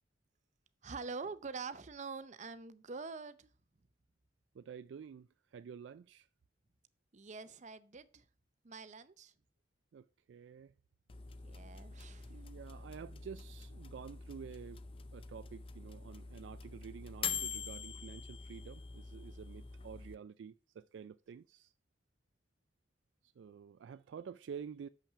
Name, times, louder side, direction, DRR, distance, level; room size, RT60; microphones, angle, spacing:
voice 1, 0.8-3.5 7.1-8.2 8.6-9.3 11.4-12.4, right 4 dB, 40° right, 0.6 m, -45 dB
voice 2, 4.5-6.3 9.9-10.7 12.3-14.8 15.1-21.7 23.4-24.9, right 7 dB, 85° right, 0.3 m, -50 dB
sound 1, 11.1-20.2, left 6 dB, 30° left, 0.5 m, -45 dB
6.9 x 5.8 x 5.6 m
head